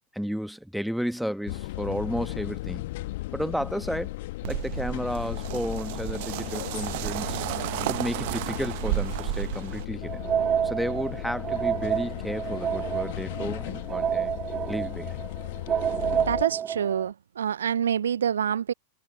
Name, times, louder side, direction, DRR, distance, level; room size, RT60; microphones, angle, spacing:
voice 1, 0.1-2.9 3.3-4.1 4.5-7.4 7.9-10.2 10.6-14.3 14.7-15.2, equal, ahead, 1.6 m, -32 dB
sound 1, 1.5-16.4, left 18 dB, 50° left, 1.9 m, -36 dB
sound 2, 4.4-9.8, right 22 dB, 50° right, 1.0 m, -32 dB
sound 3, 10.0-17.1, right 9 dB, 25° right, 1.3 m, -29 dB
voice 2, 16.3-18.7, right 8 dB, 65° right, 0.6 m, -26 dB
figure-of-eight pair, 90°, 0 cm